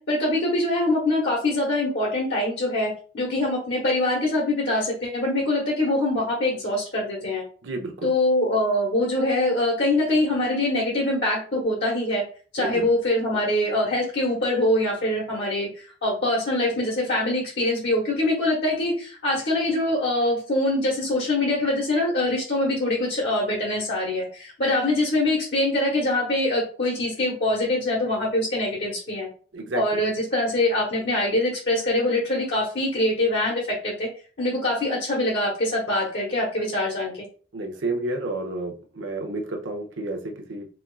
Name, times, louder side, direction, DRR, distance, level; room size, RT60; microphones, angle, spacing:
voice 1, 0.1-7.4 8.0-12.2 12.5-29.3 29.7-34.1 34.4-37.1, left 1 dB, 60° left, -4 dB, 1.0 m, -24 dB
voice 2, 7.6-8.1 12.6-12.9 29.5-30.0 37.5-40.7, right 2 dB, 85° right, 2 dB, 0.7 m, -30 dB
4.2 x 2.3 x 2.4 m, 0.41 s
head